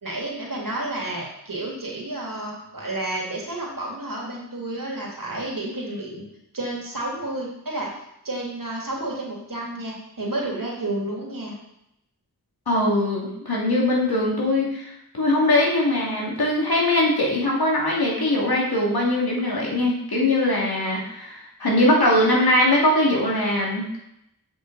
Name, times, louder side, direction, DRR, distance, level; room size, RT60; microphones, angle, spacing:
voice 1, 0.0-6.3 6.5-7.9 8.2-11.6, right 2 dB, 60° right, -3 dB, 2.6 m, -31 dB
voice 2, 12.7-23.9, left 1 dB, 80° left, -3 dB, 2.3 m, -21 dB
7.7 x 5.8 x 3.9 m, 0.79 s
wide cardioid pair, 50°, 37 cm